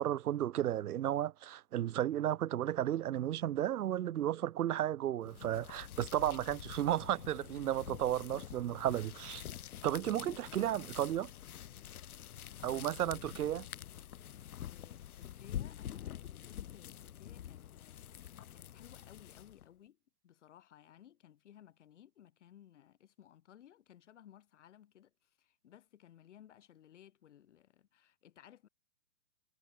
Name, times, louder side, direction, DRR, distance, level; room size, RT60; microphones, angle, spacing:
voice 1, 0.0-9.4 9.8-11.3 12.6-13.7, right 12 dB, 90° right, 0.7 m, -33 dB
sound 1, 5.2-19.7, left 11 dB, 75° left, 0.9 m, -47 dB
voice 2, 12.7-13.2 14.3-20.0 20.2-28.7, left 11 dB, 55° left, 2.6 m, -60 dB
hypercardioid pair, 160°, 43 cm